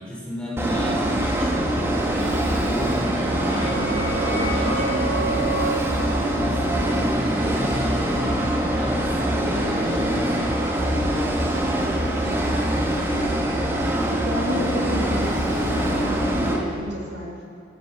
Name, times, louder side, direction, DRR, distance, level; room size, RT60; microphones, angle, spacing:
voice 1, 0.0-12.6, equal, 5° left, -6 dB, 6.3 m, -34 dB
sound 1, 0.6-16.6, right 1 dB, 15° right, 2.7 m, -23 dB
sound 2, 2.7-8.2, right 3 dB, 60° right, 5.8 m, -31 dB
voice 2, 14.3-15.6 15.9-17.4, equal, 85° right, -2 dB, 6.9 m, -31 dB
28.0 x 18.0 x 6.4 m, 2.6 s
head